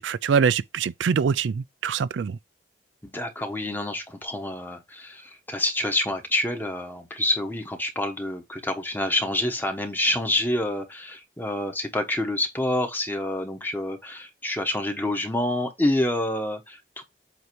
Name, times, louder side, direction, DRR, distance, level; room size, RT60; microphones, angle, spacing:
voice 1, 0.0-2.4, right 6 dB, 85° right, 0.4 m, -24 dB
voice 2, 3.0-17.0, left 1 dB, 10° left, 1.1 m, -27 dB
7.9 x 2.7 x 4.6 m
head